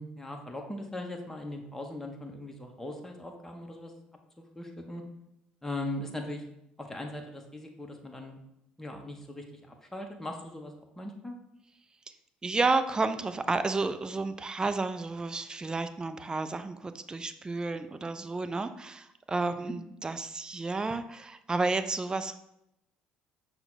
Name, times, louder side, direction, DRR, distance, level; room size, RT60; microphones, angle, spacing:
voice 1, 0.0-3.9 4.4-5.0 5.6-6.4 6.8-8.4 8.8-11.3 19.6-19.7, left 1 dB, 10° left, 2 dB, 0.7 m, -39 dB
voice 2, 12.4-22.4, right 3 dB, 20° right, 10 dB, 0.3 m, -31 dB
5.7 x 2.1 x 3.9 m, 0.82 s
hypercardioid pair, 60°, 4 cm